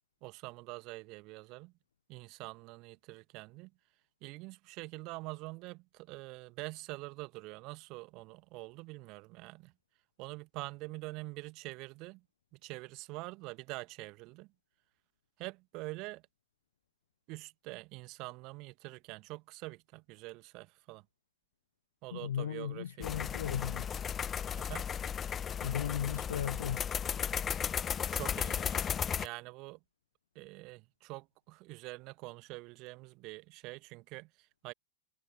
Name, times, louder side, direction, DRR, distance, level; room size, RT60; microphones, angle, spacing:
voice 1, 0.2-1.7 2.1-3.7 4.2-9.7 10.2-12.2 12.5-14.5 15.4-16.2 17.3-21.0 22.0-23.1 24.6-24.9 28.1-28.9 29.2-29.8 30.3-34.7, right 24 dB, 40° right, 1.5 m, -45 dB
voice 2, 22.1-23.9 25.6-26.9, left 9 dB, 65° left, 0.8 m, -36 dB
sound 1, 23.0-29.3, left 8 dB, 25° left, 0.4 m, -35 dB
figure-of-eight pair, 90°, 0 cm